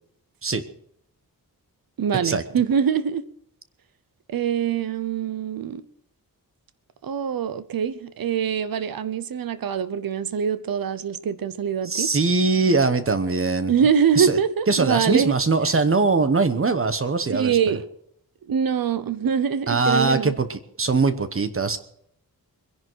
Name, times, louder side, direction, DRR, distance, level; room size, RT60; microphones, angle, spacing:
voice 1, 2.0-3.2 4.3-5.8 7.0-12.1 13.7-15.3 17.3-17.8 18.5-20.3, right 7 dB, 70° right, 0.8 m, -24 dB
voice 2, 11.8-13.7 14.2-14.4 14.7-17.6 19.7-21.8, right 4 dB, 35° right, 1.0 m, -21 dB
23.0 x 11.0 x 4.6 m
wide cardioid pair, 175°, 37 cm